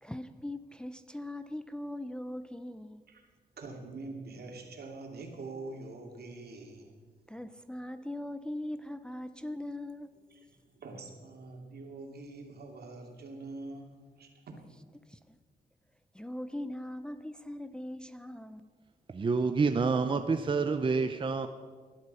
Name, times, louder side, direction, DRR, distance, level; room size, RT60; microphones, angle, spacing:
voice 1, 0.0-3.0 7.3-10.2 15.1-15.4 16.1-18.7, left 1 dB, 5° left, 10 dB, 0.5 m, -40 dB
voice 2, 3.6-6.9 10.3-14.6, right 3 dB, 75° right, 2 dB, 2.9 m, -45 dB
voice 3, 19.1-21.5, right 4 dB, 30° right, 7 dB, 0.7 m, -28 dB
19.0 x 12.0 x 5.6 m, 1.5 s
wide cardioid pair, 150°, 16 cm